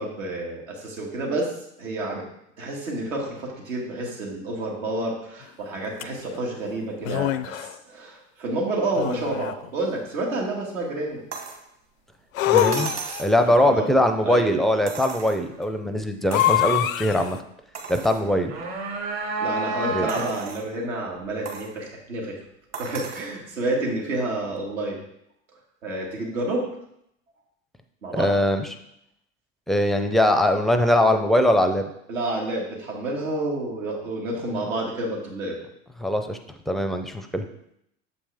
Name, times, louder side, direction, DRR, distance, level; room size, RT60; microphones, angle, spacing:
voice 1, 0.0-1.5 1.8-2.2 2.6-7.3 7.9-11.2 13.4-13.9 14.2-14.5 19.4-22.4 22.7-25.0 25.8-26.6 28.0-28.3 32.1-35.6, right 2 dB, 85° right, -2 dB, 2.1 m, -29 dB
sound 1, 6.0-6.1 7.0-7.8 8.9-9.7 12.3-13.4 16.3-17.4, left 12 dB, 85° left, 0.5 m, -24 dB
sound 2, 11.3-11.6 12.6-13.4 14.9-15.7 16.3-16.6 17.2-17.3 17.7-18.2 18.9-19.0 20.1-20.7 21.5-21.7 22.7-23.3 24.6-24.7, right 6 dB, 40° right, 1.3 m, -36 dB
voice 2, 12.5-12.9 13.2-17.4 17.9-18.5 19.9-20.1 28.1-28.7 29.7-31.9 36.0-36.4 36.7-37.4, left 1 dB, ahead, 7 dB, 0.4 m, -21 dB
sound 3, 18.2-20.6, right 3 dB, 60° right, 2.2 m, -29 dB
7.1 x 5.3 x 3.4 m, 0.76 s
hypercardioid pair, 90°, 39 cm